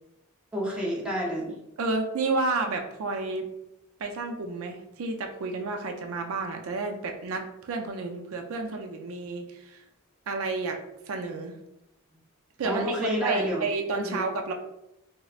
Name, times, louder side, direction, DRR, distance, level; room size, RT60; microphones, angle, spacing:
voice 1, 0.5-1.5 12.6-13.6 14.0-14.2, equal, 5° right, -4 dB, 0.6 m, -29 dB
voice 2, 1.8-3.4 4.0-9.8 10.3-10.8 11.1-11.6 12.6-14.5, right 3 dB, 80° right, 3 dB, 0.4 m, -31 dB
4.1 x 2.1 x 2.4 m, 0.86 s
head